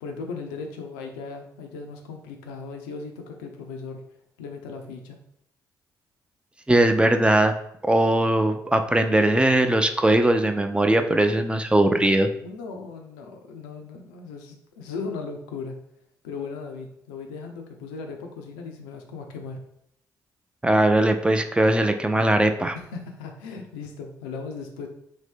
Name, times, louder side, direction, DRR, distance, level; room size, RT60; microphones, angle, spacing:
voice 1, 0.0-4.0 4.4-5.2 12.4-15.7 16.2-19.6 22.7-24.9, left 4 dB, 75° left, 3 dB, 0.4 m, -37 dB
voice 2, 6.7-7.5 7.8-12.3 20.6-22.8, right 1 dB, 10° right, 6 dB, 0.4 m, -20 dB
2.8 x 2.7 x 3.5 m, 0.73 s
figure-of-eight pair, 40°, 10 cm